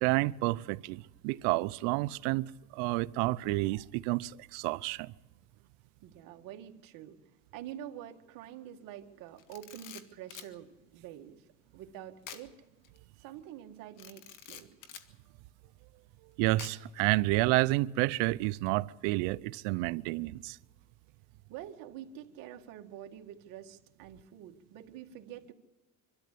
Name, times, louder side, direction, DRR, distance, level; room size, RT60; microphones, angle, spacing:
voice 1, 0.0-5.1 16.4-20.6, right 20 dB, 80° right, 0.7 m, -30 dB
voice 2, 6.0-7.2 7.5-11.5 11.7-12.6 13.2-14.7 21.5-25.5, right 11 dB, 60° right, 1.9 m, -47 dB
Camera, 9.4-10.5 12.2-12.5 12.8-13.0 14.0-15.1 16.6-17.0, left 9 dB, 55° left, 1.8 m, -47 dB
24.5 x 13.0 x 8.5 m
cardioid pair, 125°, 37 cm